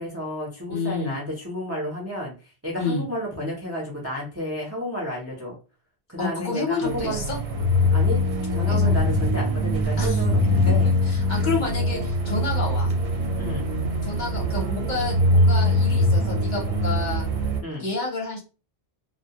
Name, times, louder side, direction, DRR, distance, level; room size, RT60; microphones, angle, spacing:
voice 1, 0.0-5.5 6.1-7.3 7.9-8.2 8.5-10.9 11.3-11.6 13.4-13.7 17.6-17.9, equal, 20° right, -3 dB, 0.4 m, -31 dB
voice 2, 0.7-1.1 2.8-3.0 6.2-7.4 8.5-8.9 10.0-10.2 10.7-10.8 11.0-12.9 14.0-17.2 17.8-18.4, left 3 dB, 50° left, -1 dB, 0.8 m, -29 dB
sound 1, 6.8-17.6, left 1 dB, 80° right, 0.9 m, -22 dB
2.1 x 2.1 x 2.7 m, 0.33 s
omnidirectional pair, 1.1 m